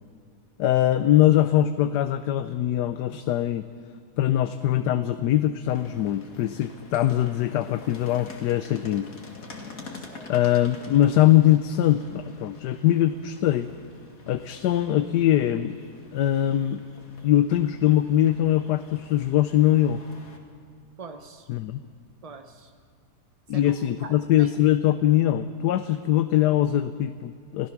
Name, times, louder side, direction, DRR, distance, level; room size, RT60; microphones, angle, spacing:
voice 1, 0.6-3.6 4.2-9.1 10.3-13.7 14.3-15.8 16.1-16.8 17.2-20.0 21.5-21.8 23.5-27.7, left 12 dB, 80° left, 11 dB, 1.2 m, -22 dB
sound 1, 5.7-20.4, left 3 dB, 55° left, 2.4 m, -46 dB
voice 2, 9.9-10.3 21.0-21.5 22.2-22.7 23.5-23.8 24.0-24.5, right 4 dB, 40° right, 6 dB, 0.5 m, -43 dB
28.0 x 16.5 x 6.0 m, 2.2 s
omnidirectional pair, 1.8 m